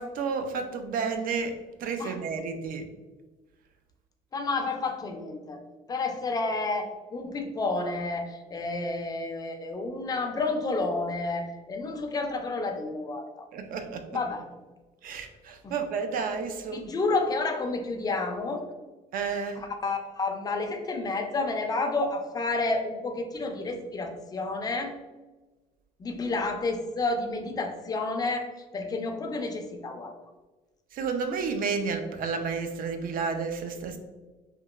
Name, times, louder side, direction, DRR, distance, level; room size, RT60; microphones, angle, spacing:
voice 1, 0.0-2.9 13.5-14.1 15.0-16.9 19.1-19.6 30.9-34.0, right 5 dB, 55° right, 7 dB, 0.4 m, -31 dB
voice 2, 4.3-5.6 5.9-13.5 14.1-14.4 15.6-15.8 16.7-18.6 19.5-24.9 26.0-28.5 28.7-30.1, left 3 dB, 20° left, 4 dB, 0.4 m, -30 dB
2.9 x 2.1 x 2.3 m, 1.2 s
cardioid pair, 110°, 17 cm